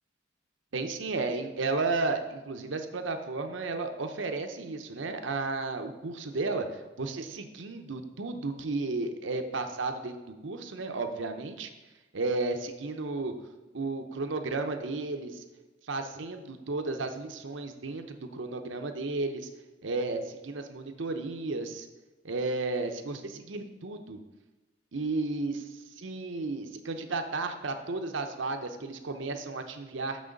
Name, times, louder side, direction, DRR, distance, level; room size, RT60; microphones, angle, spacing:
voice 1, 0.7-10.2 10.4-11.7 12.1-13.3 13.7-15.4 15.9-19.5 19.8-21.9 22.2-24.2 24.9-30.2, right 3 dB, 75° right, 6 dB, 0.8 m, -33 dB
6.6 x 6.3 x 5.2 m, 1.1 s
head